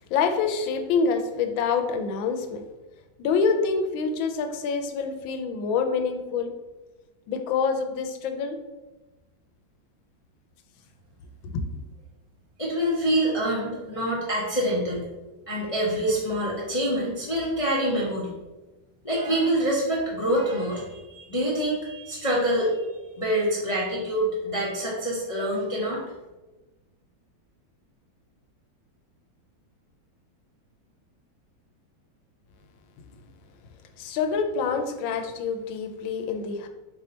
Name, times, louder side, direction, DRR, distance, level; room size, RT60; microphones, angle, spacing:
voice 1, 0.1-2.6 3.2-6.5 7.3-8.6 11.5-11.6 34.0-36.7, left 5 dB, 85° left, 6 dB, 1.3 m, -26 dB
voice 2, 12.6-15.1 15.5-18.3 19.0-22.9 23.2-26.0, right 1 dB, 55° left, -7 dB, 0.3 m, -26 dB
4.6 x 2.7 x 4.2 m, 1.1 s
omnidirectional pair, 2.1 m